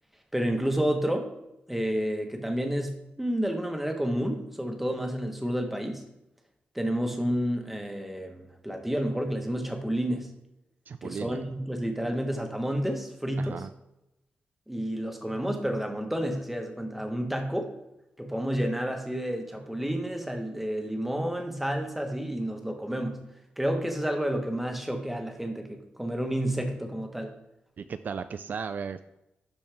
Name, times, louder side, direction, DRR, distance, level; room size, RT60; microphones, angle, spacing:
voice 1, 0.3-1.3 1.7-6.0 6.7-10.3 11.0-13.6 14.7-17.7 18.2-23.2 23.6-27.3, equal, 5° right, 3 dB, 1.2 m, -30 dB
voice 2, 10.9-11.4 13.4-13.7 27.8-29.0, right 6 dB, 55° right, 11 dB, 0.3 m, -35 dB
11.5 x 4.4 x 3.5 m, 0.90 s
wide cardioid pair, 115°, 4 cm